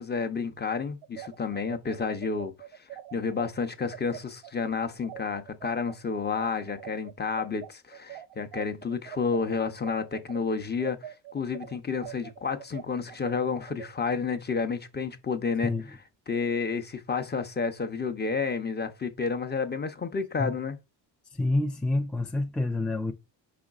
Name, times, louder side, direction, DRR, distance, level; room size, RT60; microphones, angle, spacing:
voice 1, 0.0-2.5 2.9-16.0 16.3-20.8, left 5 dB, 20° left, 0.7 m, -30 dB
sound 1, 1.0-10.4 10.8-13.9, right 12 dB, 85° right, 0.7 m, -43 dB
voice 2, 21.4-23.1, left 2 dB, ahead, 0.3 m, -27 dB
5.0 x 3.9 x 2.4 m
cardioid pair, 75°, 45 cm